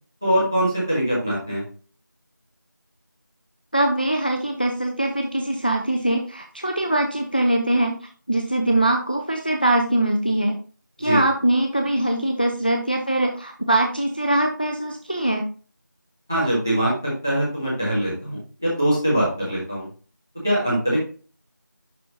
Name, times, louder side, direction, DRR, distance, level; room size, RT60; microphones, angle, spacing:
voice 1, 0.2-1.6 11.0-11.2 16.3-19.9 20.4-21.0, right 1 dB, 10° right, -8 dB, 1.5 m, -22 dB
voice 2, 3.7-8.0 8.3-10.6 11.0-15.4, right 1 dB, 30° left, 3 dB, 0.6 m, -22 dB
11.0 x 3.8 x 2.9 m, 0.38 s
figure-of-eight pair, 180°, 10 cm